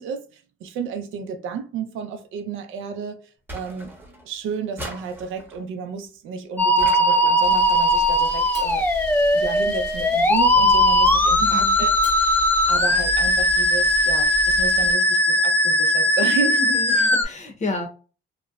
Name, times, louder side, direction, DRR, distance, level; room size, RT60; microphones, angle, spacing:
voice 1, 0.0-3.2 3.5-3.9 4.2-8.9 9.3-17.0, right 6 dB, 85° right, 0.5 m, -32 dB
sound 1, 3.5-4.3 4.8-5.6 6.8-7.6, right 1 dB, 10° right, 0.7 m, -38 dB
Musical instrument, 6.6-17.2, left 1 dB, 10° left, 0.4 m, -19 dB
Camera, 7.4-14.9, equal, 80° left, 1.3 m, -36 dB
voice 2, 11.4-11.8 16.5-17.9, left 2 dB, 35° left, 0.7 m, -30 dB
2.9 x 2.1 x 2.3 m
cardioid pair, 90°, 20 cm